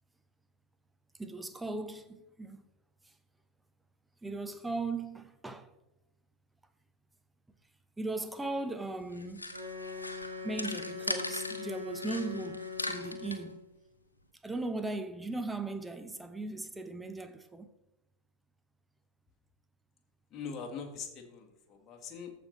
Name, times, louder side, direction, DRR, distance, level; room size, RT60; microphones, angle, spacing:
voice 1, 1.2-2.6 4.2-5.7 8.0-9.5 10.4-13.6 14.4-17.7, right 2 dB, 5° right, 0.8 m, -38 dB
sound 1, 9.0-11.6 11.9-13.4, left 2 dB, 80° left, 0.9 m, -39 dB
Wind instrument woodwind instrument, 9.5-13.7, left 5 dB, 75° right, 1.7 m, -42 dB
voice 2, 20.3-22.3, left 6 dB, 25° left, 1.7 m, -42 dB
14.0 x 5.4 x 4.1 m
figure-of-eight pair, 90°, 0 cm